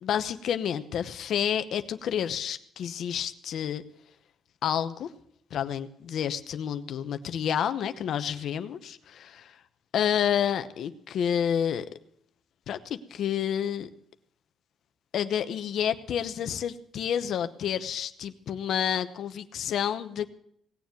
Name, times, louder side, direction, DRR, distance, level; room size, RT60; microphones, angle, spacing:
voice 1, 0.0-3.8 4.6-5.1 5.5-9.6 9.9-11.9 12.7-13.9 15.1-20.3, left 9 dB, 70° left, 10 dB, 1.0 m, -29 dB
18.5 x 7.2 x 9.2 m, 0.68 s
cardioid pair, 90°, 0 cm